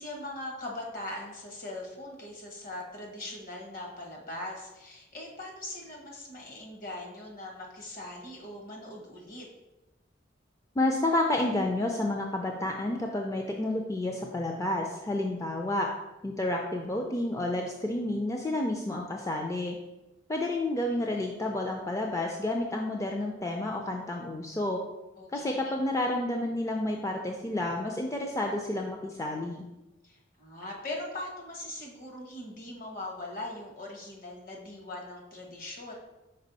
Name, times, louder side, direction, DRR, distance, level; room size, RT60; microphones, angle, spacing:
voice 1, 0.0-9.5 25.2-25.7 30.0-35.9, left 1 dB, 50° left, 0 dB, 1.3 m, -41 dB
voice 2, 10.8-15.9 16.2-19.8 20.3-24.8 25.3-29.6, left 1 dB, 15° left, 1 dB, 0.4 m, -30 dB
5.3 x 4.8 x 4.0 m, 1.0 s
head